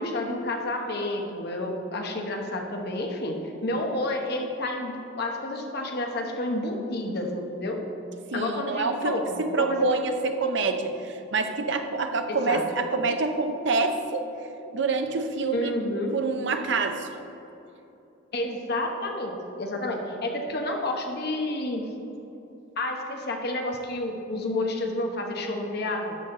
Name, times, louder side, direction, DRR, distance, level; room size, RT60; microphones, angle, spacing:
voice 1, 0.0-7.8 8.3-9.9 12.3-12.6 15.5-16.1 18.3-21.8 22.8-26.2, left 1 dB, 55° left, 2 dB, 1.1 m, -30 dB
voice 2, 8.3-14.3 14.7-15.7 16.1-17.1, right 3 dB, 60° right, 6 dB, 0.7 m, -26 dB
11.5 x 6.3 x 3.9 m, 3.0 s
head